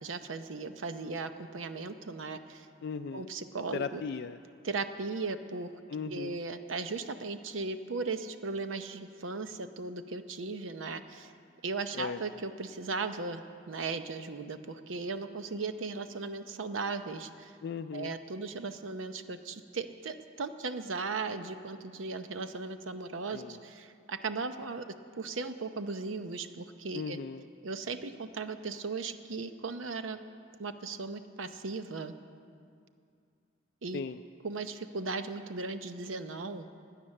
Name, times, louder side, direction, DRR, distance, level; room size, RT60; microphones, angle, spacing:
voice 1, 0.0-2.7 3.1-4.0 4.6-5.7 6.1-11.3 11.6-17.5 17.9-24.9 25.2-27.2 27.6-30.2 30.6-32.1 33.8-34.0 34.4-36.7, right 4 dB, 85° right, 9 dB, 0.7 m, -37 dB
voice 2, 2.8-3.3 3.7-4.4 5.9-6.4 11.9-12.2 17.6-18.2 23.3-23.6 26.9-27.5 33.9-34.2, left 5 dB, 55° left, 8 dB, 0.3 m, -37 dB
17.0 x 10.0 x 6.6 m, 2.4 s
head